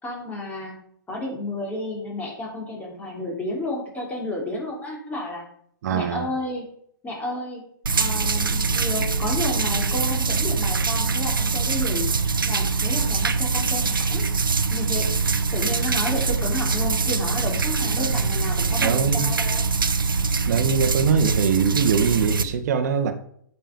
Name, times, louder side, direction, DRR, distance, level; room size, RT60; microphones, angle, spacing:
voice 1, 0.0-0.8 1.1-5.4 5.9-6.6 7.0-7.6 8.0-12.1 12.5-14.2 14.7-15.1 15.5-19.6, left 1 dB, 15° left, -1 dB, 3.2 m, -31 dB
voice 2, 5.8-6.3 18.0-18.2 18.8-19.3 20.5-23.1, right 6 dB, 50° right, 8 dB, 1.4 m, -23 dB
sound 1, 7.8-22.4, right 4 dB, 75° right, 0.8 m, -23 dB
9.2 x 6.1 x 5.2 m, 0.66 s
figure-of-eight pair, 120°, 11 cm